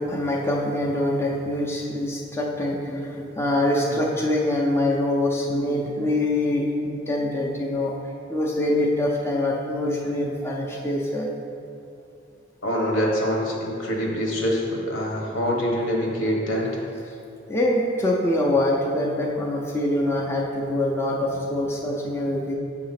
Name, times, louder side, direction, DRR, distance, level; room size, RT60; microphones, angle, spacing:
voice 1, 0.0-7.9 8.3-11.3 17.5-22.6, left 1 dB, 10° left, -3 dB, 0.4 m, -24 dB
voice 2, 12.6-16.7, equal, 70° left, -2 dB, 1.1 m, -25 dB
7.6 x 2.8 x 5.8 m, 2.6 s
head